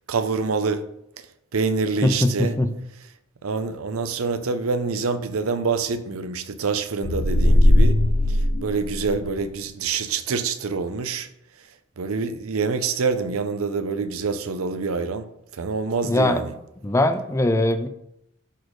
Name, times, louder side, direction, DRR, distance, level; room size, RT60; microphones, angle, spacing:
voice 1, 0.1-0.9 1.5-2.5 3.4-8.0 8.3-11.3 12.0-15.3 15.6-16.5, right 4 dB, 80° right, 0.6 m, -26 dB
voice 2, 2.0-2.7 16.0-16.4 16.8-17.9, left 1 dB, 15° left, 0.4 m, -21 dB
sound 1, 7.0-9.4, left 1 dB, 65° left, 0.6 m, -18 dB
11.0 x 4.2 x 3.2 m
head